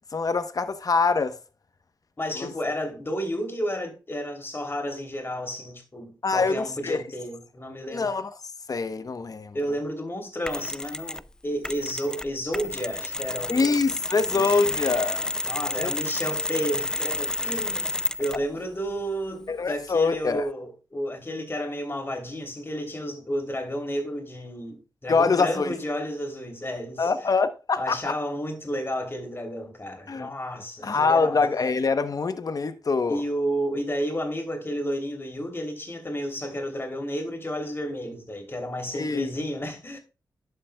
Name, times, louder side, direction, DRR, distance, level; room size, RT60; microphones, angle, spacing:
voice 1, 0.1-1.4 2.3-2.5 6.2-7.0 7.9-8.3 8.7-9.6 13.5-15.3 15.8-15.9 19.5-20.4 25.1-25.7 27.0-28.2 30.1-30.3 30.8-33.2 38.9-39.3, left 4 dB, 50° left, 0.9 m, -24 dB
voice 2, 2.2-8.1 9.5-13.7 14.3-14.8 15.4-17.9 18.2-27.1 27.8-31.4 33.1-40.0, equal, 30° left, 3.1 m, -31 dB
Mechanisms, 10.5-11.3 11.6-18.5, left 2 dB, 10° left, 0.4 m, -30 dB
11.0 x 6.8 x 2.3 m
cardioid pair, 65°, 8 cm